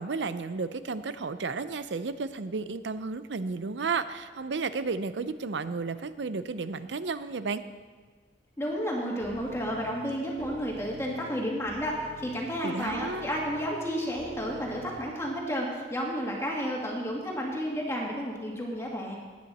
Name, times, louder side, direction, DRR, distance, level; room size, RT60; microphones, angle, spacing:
voice 1, 0.0-7.6 12.6-13.3, right 4 dB, 85° right, 13 dB, 0.6 m, -33 dB
voice 2, 8.6-19.2, equal, 15° left, -2 dB, 2.1 m, -31 dB
sound 1, 9.2-15.0, right 1 dB, 30° right, 1.1 m, -47 dB
18.0 x 9.5 x 4.2 m, 1.5 s
head